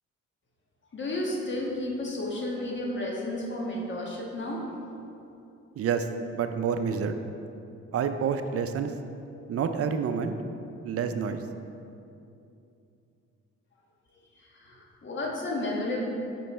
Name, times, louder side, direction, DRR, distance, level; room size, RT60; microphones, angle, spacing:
voice 1, 0.9-4.6 14.4-16.1, left 1 dB, 40° left, -2 dB, 1.4 m, -32 dB
voice 2, 5.8-6.1 6.3-7.2 7.9-8.9 9.5-10.3 10.8-11.4, right 6 dB, 50° right, 8 dB, 0.5 m, -28 dB
5.6 x 5.4 x 4.2 m, 2.7 s
cardioid pair, 90°, 30 cm